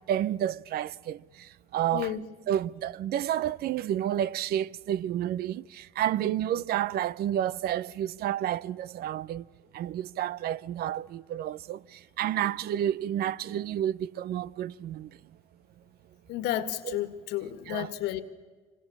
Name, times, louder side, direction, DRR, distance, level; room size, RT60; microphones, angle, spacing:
voice 1, 0.0-2.2 2.5-9.4 9.7-15.1 16.8-17.0 17.7-17.9, right 11 dB, 65° right, 0.7 m, -30 dB
voice 2, 16.3-18.2, left 13 dB, 80° left, 1.9 m, -32 dB
26.0 x 25.5 x 7.3 m
supercardioid pair, 85°, 17 cm